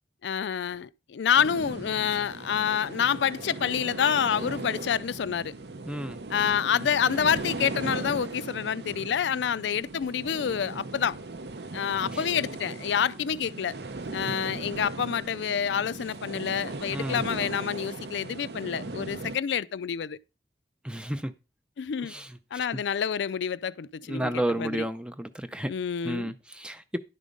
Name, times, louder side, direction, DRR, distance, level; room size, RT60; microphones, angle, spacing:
voice 1, 0.2-5.5 6.3-11.2 11.7-13.8 14.1-20.2 21.8-22.1 22.5-24.9 25.7-26.3, left 8 dB, 80° left, 0.4 m, -28 dB
sound 1, 1.3-19.4, right 2 dB, 65° right, 0.8 m, -38 dB
voice 2, 5.9-6.2 12.1-12.2 16.9-17.2 20.8-21.3 22.0-22.3 24.1-25.7 26.0-27.0, right 1 dB, 5° right, 0.5 m, -31 dB
11.0 x 5.0 x 5.3 m
head